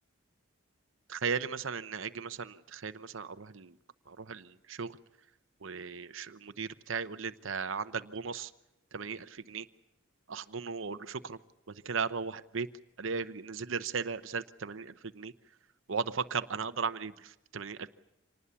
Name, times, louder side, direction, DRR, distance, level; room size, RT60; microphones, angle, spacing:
voice 1, 1.1-3.8 4.1-5.0 5.6-8.5 8.9-9.7 10.3-11.4 11.7-12.7 13.0-15.3 15.9-17.9, right 5 dB, 75° right, 11 dB, 0.8 m, -36 dB
26.0 x 19.5 x 7.1 m, 0.92 s
head